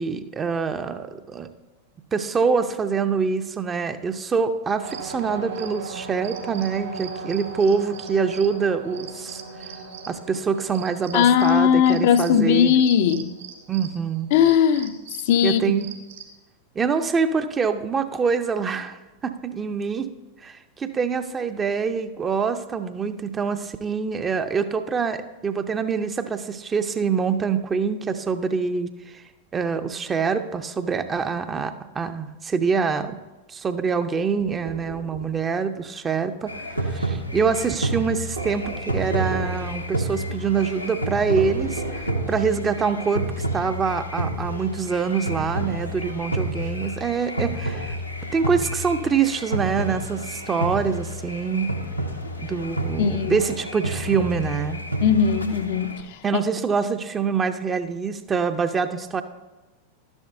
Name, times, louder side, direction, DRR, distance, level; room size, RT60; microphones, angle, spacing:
voice 1, 0.0-1.5 2.1-9.4 10.1-12.7 13.7-14.3 15.4-15.9 16.8-20.1 20.4-29.2 29.5-33.2 33.5-48.0 48.3-51.7 52.4-54.8 56.2-59.2, right 5 dB, 20° right, 0.5 m, -25 dB
sound 1, 4.8-16.3, right 5 dB, 65° right, 1.9 m, -38 dB
voice 2, 11.1-13.3 14.3-15.0 15.2-15.6 53.0-53.4 55.0-56.4, left 8 dB, 50° left, 0.5 m, -19 dB
sound 2, 34.4-35.4 38.4-39.7 41.4-42.5, right 3 dB, 80° right, 1.5 m, -34 dB
sound 3, 36.5-56.0, right 1 dB, 90° left, 0.8 m, -30 dB
12.0 x 10.5 x 2.6 m
figure-of-eight pair, 90°, 0 cm